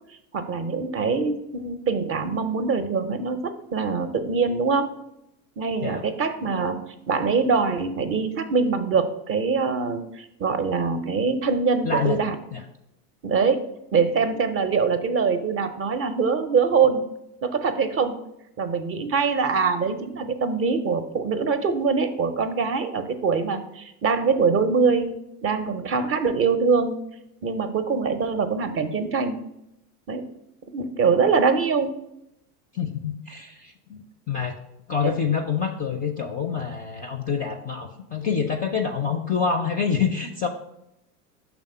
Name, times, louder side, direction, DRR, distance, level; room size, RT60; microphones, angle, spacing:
voice 1, 0.3-4.9 5.6-6.8 7.1-12.4 13.2-13.6 13.9-17.0 17.4-18.2 18.6-25.2 25.4-27.0 27.4-29.3 30.1-30.2 30.7-32.0 35.0-35.1, right 5 dB, 30° right, 8 dB, 0.6 m, -23 dB
voice 2, 11.8-12.2 12.5-12.6 32.7-34.6 34.9-40.5, left 6 dB, 20° left, 5 dB, 0.4 m, -26 dB
6.0 x 3.5 x 5.4 m, 0.83 s
hypercardioid pair, 90°, 46 cm